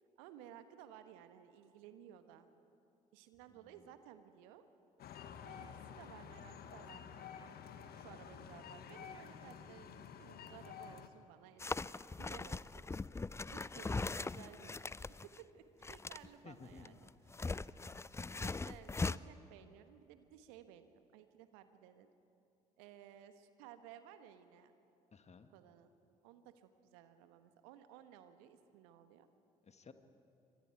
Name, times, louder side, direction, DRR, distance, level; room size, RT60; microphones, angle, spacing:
voice 1, 0.2-2.5 3.1-4.6 5.4-7.4 7.9-12.9 13.5-15.6 15.9-17.1 18.4-22.1 22.8-24.7 25.5-25.9 26.2-29.3, right 10 dB, 75° right, 10 dB, 1.3 m, -57 dB
voice 2, 3.5-3.9 16.4-17.0 25.1-25.5 29.6-29.9, left 5 dB, 35° left, 8 dB, 1.8 m, -56 dB
sound 1, 5.0-11.1, left 7 dB, 55° left, 1.4 m, -51 dB
sound 2, 11.6-15.4 15.8-16.3 16.7-19.2, left 3 dB, 15° left, 0.5 m, -40 dB
27.5 x 25.0 x 4.8 m, 2.8 s
figure-of-eight pair, 45°, 19 cm